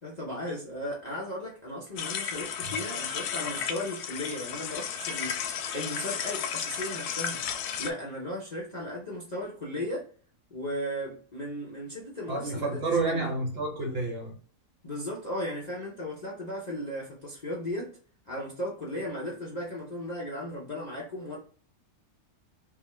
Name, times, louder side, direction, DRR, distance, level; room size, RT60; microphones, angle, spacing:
voice 1, 0.0-7.5 7.8-10.1 10.5-13.3 14.8-18.0 18.2-21.4, left 1 dB, 35° left, 0.7 m, -36 dB
sound 1, 2.0-7.9, left 8 dB, 80° left, 1.1 m, -33 dB
voice 2, 12.3-14.4, right 3 dB, 45° right, 1.0 m, -30 dB
3.5 x 2.7 x 3.1 m
omnidirectional pair, 1.6 m